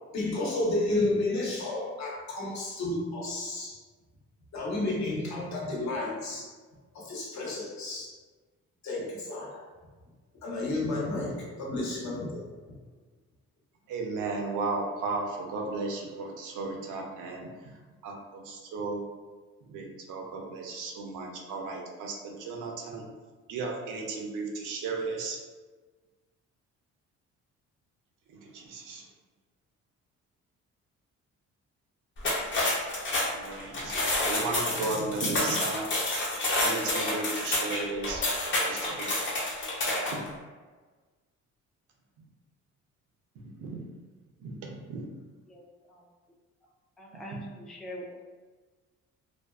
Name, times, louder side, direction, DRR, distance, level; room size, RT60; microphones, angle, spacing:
voice 1, 0.1-3.8 4.5-6.5 6.9-8.2 8.8-9.6 10.4-12.7, left 2 dB, 65° left, -4 dB, 0.9 m, -31 dB
voice 2, 13.9-17.5 18.0-19.0 19.6-23.0 23.5-25.4 28.3-29.0 33.1-33.9 34.3-35.9 36.6-38.2 38.5-39.1 40.1-40.2 43.4-43.8 44.4-45.0, right 3 dB, 85° right, 0 dB, 0.6 m, -35 dB
sound 1, 32.2-40.3, left 1 dB, 40° left, 0.7 m, -29 dB
voice 3, 45.5-46.0 47.0-48.1, equal, ahead, -2 dB, 0.3 m, -43 dB
2.5 x 2.3 x 2.3 m, 1.4 s
cardioid pair, 90°, 30 cm